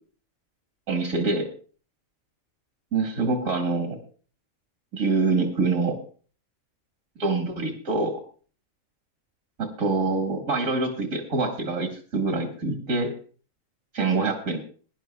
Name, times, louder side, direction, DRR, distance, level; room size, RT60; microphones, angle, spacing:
voice 1, 0.9-1.5 2.9-4.0 4.9-6.0 7.2-8.2 9.6-13.1 13.9-14.6, right 3 dB, 75° right, 3 dB, 2.1 m, -25 dB
21.5 x 11.0 x 2.3 m, 0.40 s
omnidirectional pair, 1.4 m